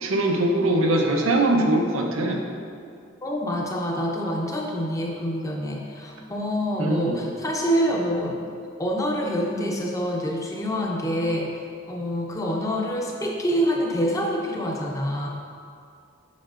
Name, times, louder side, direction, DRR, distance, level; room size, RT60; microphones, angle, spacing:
voice 1, 0.0-2.4 6.8-7.2, right 1 dB, 85° right, 1 dB, 0.7 m, -22 dB
voice 2, 3.2-8.4 8.8-11.5 11.9-15.3, equal, 15° left, -1 dB, 0.7 m, -26 dB
7.3 x 5.7 x 2.5 m, 2.3 s
head